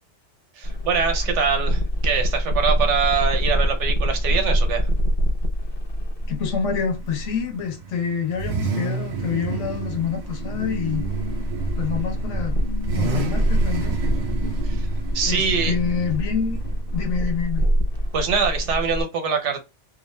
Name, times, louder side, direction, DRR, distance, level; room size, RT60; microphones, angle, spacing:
sound 1, 0.6-7.4 9.7-19.0, equal, 55° left, 1.0 m, -25 dB
voice 1, 0.6-4.9 14.6-14.9 15.1-15.7 18.1-19.6, right 6 dB, 75° right, 1.1 m, -24 dB
Car / Idling / Accelerating revving vroom, 6.2-18.3, right 3 dB, 50° right, 0.7 m, -31 dB
voice 2, 6.3-11.1 11.8-12.6 12.9-14.0 15.3-16.6 16.9-17.7, left 7 dB, 80° left, 1.1 m, -27 dB
2.4 x 2.4 x 3.1 m
omnidirectional pair, 1.2 m